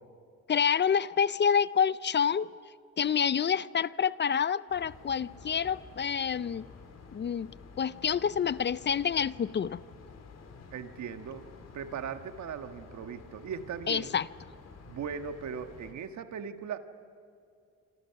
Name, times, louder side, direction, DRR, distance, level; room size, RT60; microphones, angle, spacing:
voice 1, 0.5-2.5 3.0-6.7 7.1-7.5 7.8-9.8 13.9-14.3, left 7 dB, 35° left, 0.5 m, -27 dB
sound 1, 4.7-15.9, left 4 dB, 55° left, 3.7 m, -51 dB
voice 2, 10.7-14.2 14.9-16.8, right 7 dB, 70° right, 1.7 m, -39 dB
26.5 x 26.0 x 5.9 m
cardioid pair, 90°, 30 cm